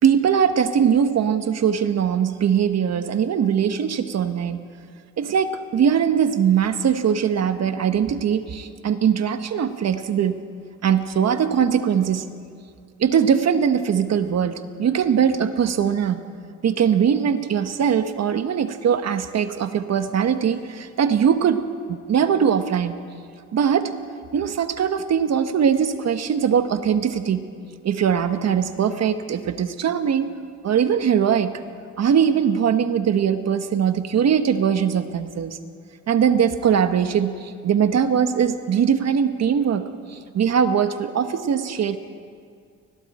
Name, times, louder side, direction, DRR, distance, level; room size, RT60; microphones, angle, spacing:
voice 1, 0.0-4.6 5.2-10.4 10.8-12.3 13.0-16.2 16.6-22.9 23.5-23.9 24.3-27.4 27.8-30.3 30.6-31.6 32.0-35.6 36.1-42.0, right 8 dB, 60° right, 9 dB, 1.4 m, -21 dB
29.5 x 21.0 x 4.4 m, 2.2 s
cardioid pair, 90°, 30 cm